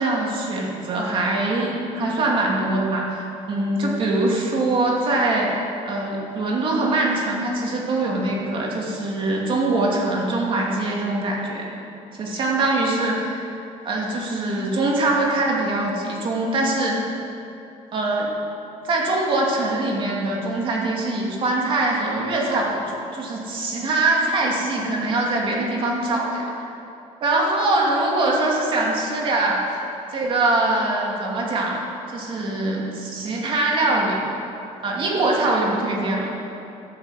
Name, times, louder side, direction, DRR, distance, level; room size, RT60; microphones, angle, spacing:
voice 1, 0.0-5.5 5.8-11.7 12.2-13.4 13.8-17.0 17.9-18.3 18.8-22.8 23.1-26.7 27.2-29.6 30.1-31.8 32.1-34.2 34.8-36.3, right 2 dB, 40° right, -2 dB, 2.4 m, -23 dB
12.5 x 8.4 x 7.6 m, 2.8 s
cardioid pair, 165°, 13 cm